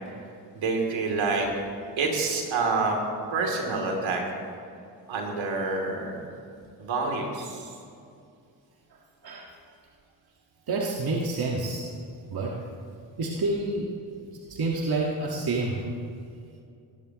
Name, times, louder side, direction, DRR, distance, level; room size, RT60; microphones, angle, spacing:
voice 1, 0.5-1.5 2.0-3.0 3.3-4.4 5.1-6.3 6.8-7.8, right 3 dB, 70° right, 1 dB, 3.1 m, -27 dB
voice 2, 10.7-11.8 12.3-12.6 13.2-13.9 14.5-15.9, right 2 dB, 50° right, -2 dB, 1.8 m, -28 dB
19.5 x 14.0 x 3.1 m, 2.4 s
supercardioid pair, 55°, 48 cm